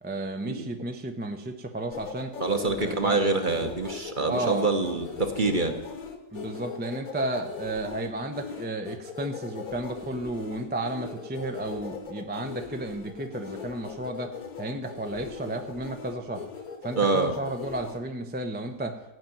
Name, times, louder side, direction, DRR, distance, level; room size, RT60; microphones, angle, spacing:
voice 1, 0.0-2.3 2.8-3.2 4.3-4.7 6.3-14.3 14.6-16.5 16.8-19.0, right 2 dB, 10° right, 4 dB, 0.4 m, -33 dB
sound 1, 1.9-18.0, left 6 dB, 60° left, 1.7 m, -39 dB
voice 2, 2.4-5.8 17.0-17.3, right 3 dB, 35° right, 6 dB, 1.0 m, -26 dB
14.0 x 5.9 x 9.2 m, 0.98 s
omnidirectional pair, 1.9 m